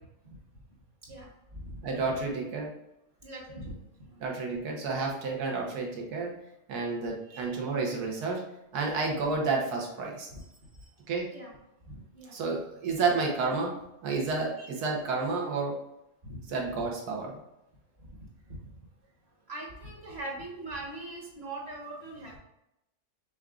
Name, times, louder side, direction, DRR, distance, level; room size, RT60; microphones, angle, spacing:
voice 1, 1.0-1.7 3.2-4.2 7.3-7.4 11.3-11.5 11.9-12.4 14.6-14.7 16.2-16.4 18.2-18.6 19.5-22.4, right 2 dB, 45° right, -2 dB, 1.5 m, -41 dB
voice 2, 1.8-2.7 4.2-6.3 6.7-8.4 8.7-10.3 11.1-11.3 12.3-13.8 14.0-15.8 16.5-17.4, right 4 dB, 80° right, 0 dB, 1.5 m, -30 dB
6.0 x 3.6 x 2.4 m, 0.86 s
omnidirectional pair, 1.6 m